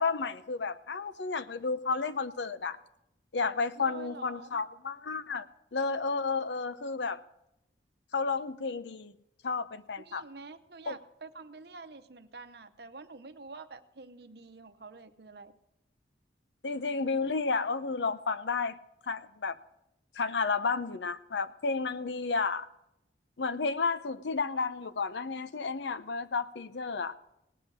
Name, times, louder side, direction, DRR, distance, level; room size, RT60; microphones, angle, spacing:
voice 1, 0.0-2.8 3.3-5.5 5.7-7.2 8.1-9.1 9.4-10.2 10.9-11.0 16.6-18.8 19.0-19.6 20.1-22.7 23.4-27.1, left 4 dB, 75° left, 13 dB, 0.7 m, -32 dB
voice 2, 3.8-4.5 10.0-15.5, right 4 dB, 60° right, 9 dB, 0.8 m, -48 dB
18.0 x 7.6 x 6.4 m, 0.84 s
head